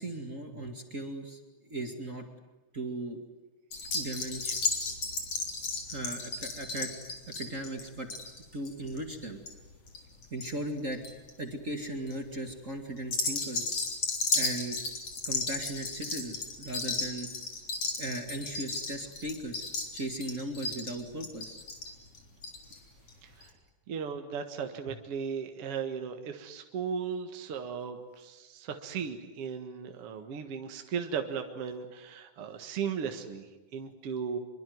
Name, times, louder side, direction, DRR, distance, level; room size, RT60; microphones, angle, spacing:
voice 1, 0.0-1.4 1.7-2.3 2.7-3.2 3.9-4.6 5.9-6.9 7.4-8.1 8.5-9.4 10.3-11.0 11.4-13.7 14.4-14.8 15.2-17.3 18.0-21.6, right 1 dB, 25° right, 4 dB, 2.1 m, -37 dB
sound 1, 3.7-10.5 10.8-11.3 11.8-12.1 13.0-22.8 23.1-23.2 23.4-23.5, left 3 dB, 45° left, 4.5 m, -34 dB
voice 2, 23.9-34.4, right 6 dB, 50° right, 5 dB, 2.3 m, -36 dB
25.5 x 23.5 x 9.5 m, 1.1 s
omnidirectional pair, 3.7 m